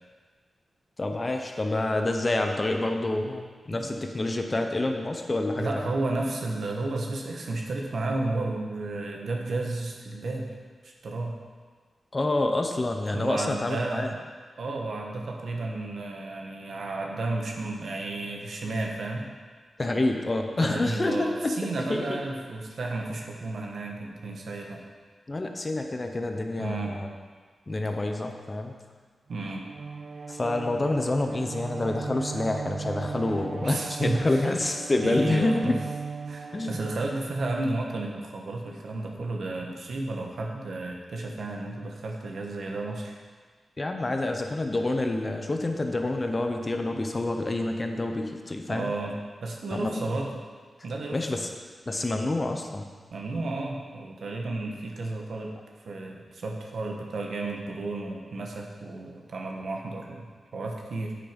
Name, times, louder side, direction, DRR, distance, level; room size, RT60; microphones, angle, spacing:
voice 1, 1.0-5.9 12.1-14.1 19.8-22.2 25.3-27.1 27.7-28.7 30.3-35.8 36.5-36.8 43.8-48.9 49.7-50.2 51.1-51.5 51.9-52.8, left 2 dB, 25° left, 4 dB, 0.8 m, -28 dB
voice 2, 3.7-4.0 5.6-10.5 10.8-11.4 13.1-14.2 14.6-19.2 20.6-24.8 26.6-27.0 29.3-29.7 33.6-34.4 35.0-35.8 36.3-43.1 48.7-49.1 49.4-50.4 50.8-51.4 53.1-55.6 55.8-61.2, right 2 dB, 70° right, 1 dB, 1.5 m, -32 dB
Bowed string instrument, 29.3-37.7, right 5 dB, 40° right, 0.4 m, -38 dB
9.2 x 8.8 x 5.2 m, 1.5 s
wide cardioid pair, 155°, 0 cm